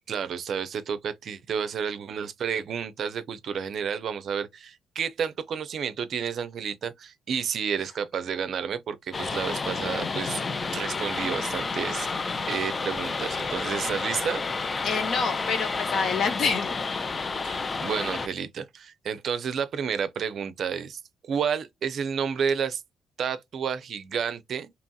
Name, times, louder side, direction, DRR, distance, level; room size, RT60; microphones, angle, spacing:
voice 1, 0.1-10.4 10.7-12.1 12.5-14.4 17.4-21.0 21.3-22.8 23.2-24.7, right 7 dB, 60° right, 0.4 m, -30 dB
sound 1, 9.1-18.3, left 4 dB, 35° left, 0.4 m, -30 dB
voice 2, 14.8-16.7 18.0-18.1, left 5 dB, 60° left, 0.7 m, -27 dB
2.8 x 2.7 x 2.2 m
cardioid pair, 90°, 0 cm